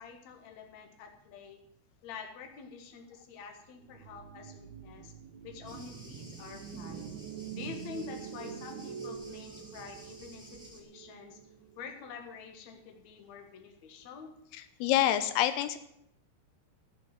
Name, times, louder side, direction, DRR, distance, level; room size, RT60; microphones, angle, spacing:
voice 1, 0.0-1.6 2.0-5.1 5.4-7.0 7.5-11.4 11.8-14.3 14.6-14.7, left 5 dB, 55° left, 3 dB, 2.6 m, -47 dB
sound 1, 3.8-12.1, right 8 dB, 70° right, 1.8 m, -45 dB
Thunder, 5.6-10.8, right 1 dB, ahead, 2.2 m, -51 dB
voice 2, 14.8-15.8, left 12 dB, 90° left, 11 dB, 2.7 m, -26 dB
15.0 x 6.7 x 9.2 m, 0.76 s
omnidirectional pair, 4.5 m